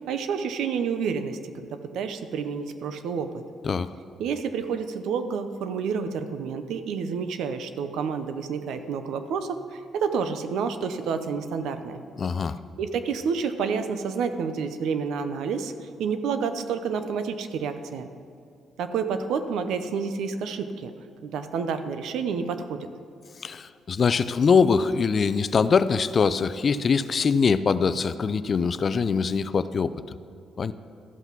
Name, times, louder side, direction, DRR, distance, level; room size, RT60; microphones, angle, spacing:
voice 1, 0.0-3.4 4.2-12.0 12.8-18.1 18.8-20.9 21.2-22.9, right 6 dB, 80° right, 9 dB, 0.7 m, -29 dB
voice 2, 12.2-12.6 23.4-30.2 30.6-30.7, left 5 dB, 45° left, 14 dB, 0.4 m, -23 dB
13.5 x 5.7 x 6.0 m, 2.5 s
cardioid pair, 90°, 0 cm